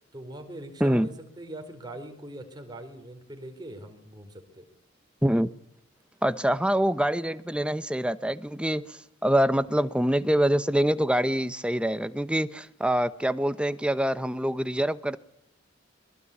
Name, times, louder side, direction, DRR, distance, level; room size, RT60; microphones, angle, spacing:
voice 1, 0.1-4.6, right 1 dB, 20° right, 4.4 m, -42 dB
voice 2, 6.2-15.2, equal, 5° right, 0.9 m, -25 dB
23.5 x 22.0 x 8.5 m
head